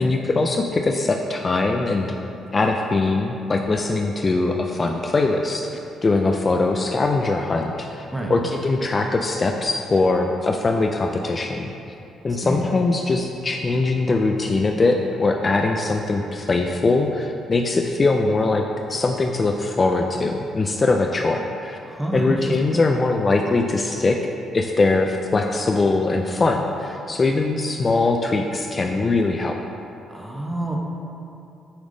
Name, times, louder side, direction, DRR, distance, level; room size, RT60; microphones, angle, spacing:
voice 1, 0.0-2.1 2.5-5.7 6.0-11.7 12.2-18.6 18.9-21.8 22.1-24.2 24.5-29.6, left 3 dB, 30° left, 3 dB, 0.3 m, -21 dB
voice 2, 12.3-12.6 21.9-22.8 30.1-30.8, right 1 dB, 10° right, -1 dB, 0.9 m, -28 dB
7.1 x 3.5 x 3.8 m, 2.8 s
cardioid pair, 90°, 0 cm